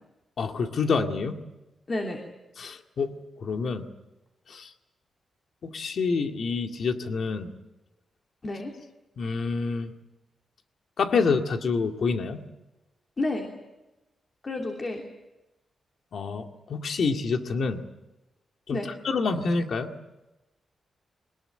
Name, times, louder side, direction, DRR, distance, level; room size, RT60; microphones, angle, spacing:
voice 1, 0.4-1.4 2.6-3.1 3.4-3.9 4.5-4.7 5.6-7.5 9.2-9.9 11.0-12.4 16.1-17.8 18.7-18.8 19.0-19.9, left 4 dB, 60° left, 5 dB, 2.0 m, -27 dB
voice 2, 1.9-2.2 8.4-8.7 13.2-13.5 14.4-15.0 18.7-18.9, left 2 dB, 30° left, 2 dB, 2.9 m, -30 dB
22.5 x 20.0 x 9.0 m, 1.0 s
wide cardioid pair, 125°, 0 cm